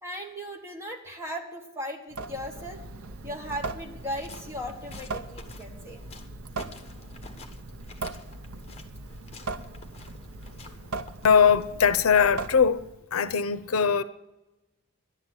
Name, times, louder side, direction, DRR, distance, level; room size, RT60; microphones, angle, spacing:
voice 1, 0.0-2.8 3.2-6.0, equal, 15° right, 1.6 m, -37 dB
Water tap faucet / Sink (filling or washing) / Drip, 2.1-13.0, right 3 dB, 85° right, 0.8 m, -39 dB
sound 1, 4.0-11.7, left 3 dB, 30° left, 1.3 m, -49 dB
voice 2, 11.2-12.8 13.1-14.0, left 6 dB, 85° left, 0.6 m, -21 dB
11.0 x 8.1 x 9.5 m
head